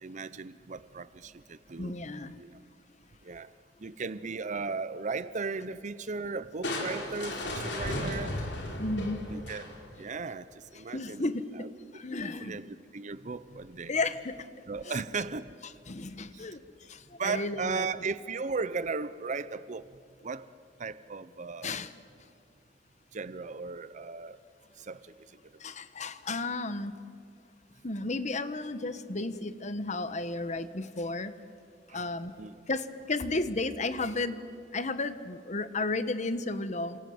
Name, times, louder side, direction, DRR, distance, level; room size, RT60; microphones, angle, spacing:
voice 1, 0.0-2.5 3.2-3.5 3.8-8.4 9.3-12.0 12.4-12.6 12.9-14.0 14.7-15.5 16.3-16.5 17.2-19.9 20.2-20.5 20.8-21.8 23.1-24.4 24.7-25.7 31.9-32.0 32.4-32.6, right 4 dB, 45° right, 14 dB, 0.7 m, -37 dB
voice 2, 1.8-2.3 8.8-9.3 10.9-11.5 11.9-12.6 13.9-14.5 14.8-14.9 15.9-17.9 21.6-21.9 25.6-27.0 27.8-31.3 31.9-32.3 32.7-34.4 34.7-37.0, left 2 dB, 40° left, 12 dB, 1.2 m, -33 dB
Crushing, 6.6-10.0, left 1 dB, 70° left, 4.4 m, -35 dB
29.0 x 26.5 x 7.8 m, 2.3 s
head